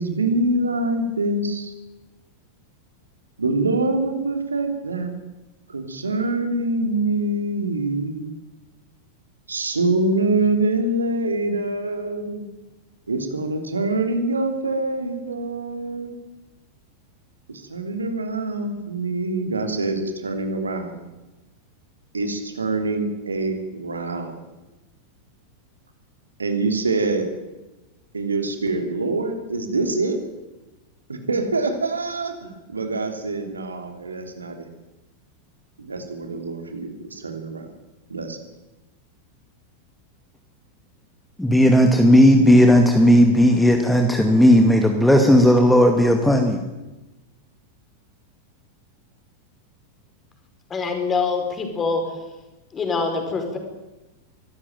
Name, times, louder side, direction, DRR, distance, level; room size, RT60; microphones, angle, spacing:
voice 1, 0.0-1.7 3.4-5.1 5.7-8.4 9.5-12.4 13.1-16.1 17.5-21.0 22.1-24.4 26.4-27.3 28.1-30.2 31.1-34.6 35.8-37.7 38.1-38.4, right 2 dB, 75° right, 5 dB, 3.2 m, -25 dB
voice 2, 41.4-46.6, equal, 5° left, 4 dB, 2.2 m, -15 dB
voice 3, 50.7-52.3 52.7-53.6, left 4 dB, 20° left, 4 dB, 5.4 m, -25 dB
23.5 x 14.5 x 9.3 m, 1.1 s
figure-of-eight pair, 90°, 0 cm